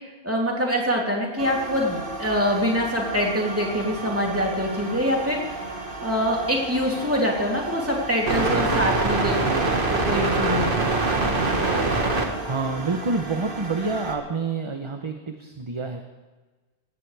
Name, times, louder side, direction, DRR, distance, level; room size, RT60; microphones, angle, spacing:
voice 1, 0.2-5.4 6.0-9.4 9.7-9.8 10.1-10.7, equal, 15° right, -2 dB, 2.9 m, -24 dB
sound 1, 1.4-14.1, right 3 dB, 55° right, 1.7 m, -27 dB
voice 2, 9.4-9.9 12.4-16.0, right 4 dB, 30° right, 5 dB, 0.8 m, -28 dB
18.0 x 16.5 x 3.4 m, 1.3 s
omnidirectional pair, 1.1 m